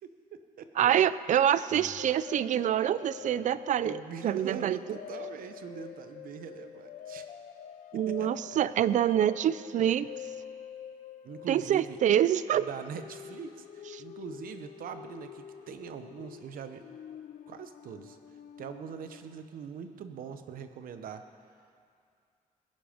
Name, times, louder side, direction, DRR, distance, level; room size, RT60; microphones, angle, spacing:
voice 1, 0.0-0.7 1.7-2.1 3.8-7.3 7.9-8.6 11.2-12.0 12.5-16.8 17.5-18.2 18.6-21.2, right 7 dB, 85° right, 9 dB, 0.9 m, -42 dB
voice 2, 0.8-4.8 7.9-10.1 11.5-12.7 13.9-14.0, right 10 dB, 60° right, 16 dB, 0.4 m, -26 dB
sound 1, 2.0-19.4, left 9 dB, 75° left, 0.6 m, -46 dB
19.0 x 11.0 x 5.2 m, 2.3 s
wide cardioid pair, 165°, 14 cm